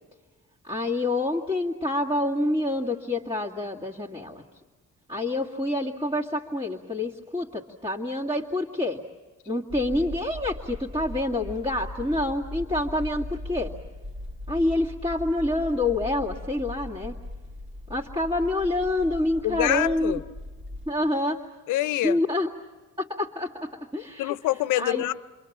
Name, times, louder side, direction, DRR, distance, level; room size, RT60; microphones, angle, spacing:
voice 1, 0.6-4.4 5.1-9.0 9.5-13.7 14.5-17.2 17.9-20.2 20.9-21.5 22.0-22.5 23.0-24.3 24.8-25.0, left 1 dB, 15° right, 2.2 m, -27 dB
sound 1, 9.7-20.9, left 1 dB, 40° right, 2.5 m, -39 dB
voice 2, 19.4-20.2 21.7-22.2 24.2-25.1, left 16 dB, 85° left, 0.7 m, -25 dB
29.5 x 23.0 x 7.4 m
cardioid pair, 90°, 30 cm